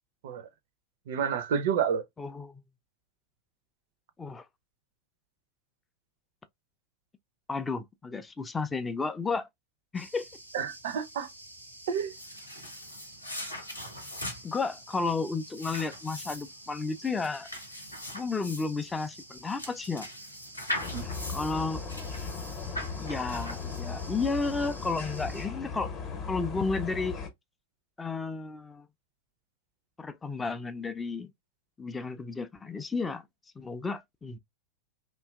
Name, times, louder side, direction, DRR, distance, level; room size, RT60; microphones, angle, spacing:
voice 1, 1.1-2.0 10.5-11.3 11.9-12.1 20.8-21.1, right 7 dB, 55° right, 0.4 m, -29 dB
voice 2, 2.2-2.6 4.2-4.5 7.5-9.5 9.9-10.3 14.4-17.5 18.1-20.1 21.3-21.8 23.0-25.9 26.3-27.2 28.0-28.9 30.0-31.3 31.8-33.2 33.6-34.4, left 4 dB, 15° left, 0.3 m, -32 dB
sound 1, 9.9-25.5, right 1 dB, 90° right, 0.7 m, -50 dB
sound 2, 12.0-24.1, left 1 dB, 85° left, 0.7 m, -41 dB
sound 3, 20.8-27.3, left 5 dB, 30° left, 0.7 m, -37 dB
2.7 x 2.3 x 2.2 m
figure-of-eight pair, 90°, 0 cm